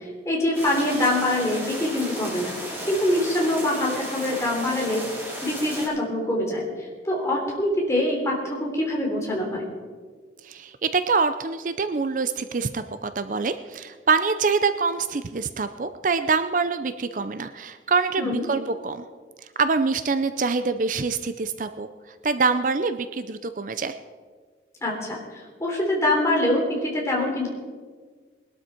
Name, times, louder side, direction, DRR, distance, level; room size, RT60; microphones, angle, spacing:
voice 1, 0.3-2.6 2.9-5.0 5.4-6.6 7.0-9.7 18.2-18.5 24.8-27.5, left 1 dB, 15° left, -2 dB, 3.5 m, -24 dB
sound 1, 0.5-5.9, equal, 10° right, 4.6 m, -34 dB
voice 2, 10.4-19.0 19.6-21.9 22.2-23.9, right 4 dB, 45° right, 10 dB, 0.5 m, -25 dB
21.0 x 12.0 x 4.4 m, 1.5 s
head